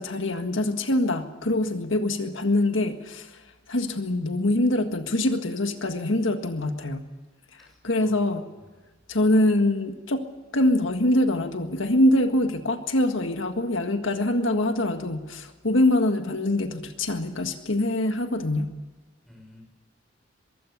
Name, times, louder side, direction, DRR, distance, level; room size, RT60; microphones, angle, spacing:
voice 1, 0.0-3.4 3.7-7.1 7.5-8.5 9.1-10.2 10.5-18.7, left 1 dB, 90° left, 6 dB, 1.7 m, -24 dB
voice 2, 7.6-8.2 19.2-19.6, left 1 dB, ahead, 0 dB, 6.0 m, -52 dB
22.5 x 16.0 x 8.4 m, 1.2 s
head